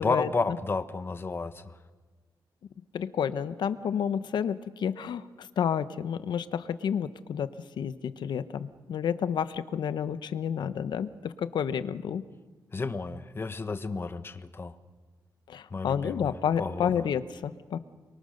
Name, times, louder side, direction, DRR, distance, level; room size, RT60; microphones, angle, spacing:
voice 1, 0.0-1.7 12.7-14.8 15.7-17.0, left 4 dB, 30° left, 11 dB, 1.3 m, -32 dB
voice 2, 2.9-5.2 5.6-7.5 7.8-12.2 15.5-17.8, left 8 dB, 80° left, 12 dB, 1.1 m, -30 dB
29.5 x 23.0 x 6.7 m, 1.4 s
cardioid pair, 110°, 8 cm